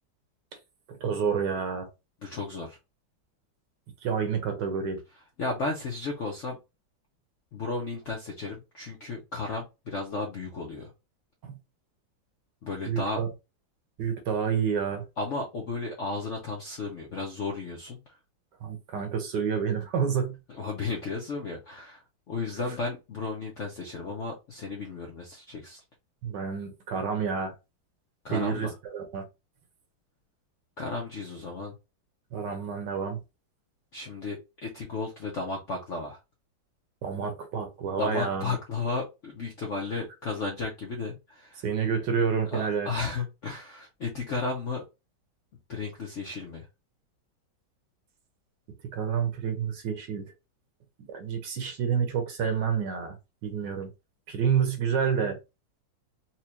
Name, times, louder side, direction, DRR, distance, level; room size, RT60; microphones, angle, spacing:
voice 1, 0.9-1.9 4.0-5.0 11.4-11.6 12.9-13.3 14.0-15.0 18.6-20.4 22.7-22.8 26.2-27.5 28.3-29.2 32.3-33.2 37.0-38.5 41.6-42.9 48.8-50.2 51.1-53.9 54.3-55.4, right 7 dB, 65° right, 1.3 m, -29 dB
voice 2, 2.2-2.8 5.4-6.6 7.5-10.9 12.6-13.2 15.2-18.0 20.6-22.0 22.3-25.8 28.2-28.7 30.8-31.8 33.9-36.2 38.0-41.6 42.5-44.8 45.7-46.6, left 3 dB, 65° left, 0.7 m, -34 dB
4.4 x 2.3 x 2.8 m
omnidirectional pair, 2.2 m